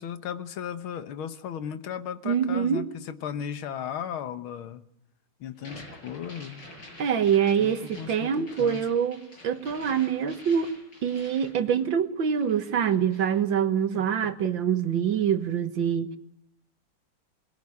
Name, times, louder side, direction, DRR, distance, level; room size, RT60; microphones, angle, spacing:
voice 1, 0.0-4.8 5.4-6.7 7.6-8.9 13.9-14.4, left 8 dB, 85° left, 12 dB, 2.0 m, -36 dB
voice 2, 2.3-2.8 7.0-10.7 11.0-16.1, right 8 dB, 70° right, 10 dB, 2.0 m, -25 dB
sound 1, 5.6-12.1 12.4-13.4, left 1 dB, 65° left, 8.0 m, -47 dB
21.5 x 21.0 x 9.6 m, 0.81 s
omnidirectional pair, 2.2 m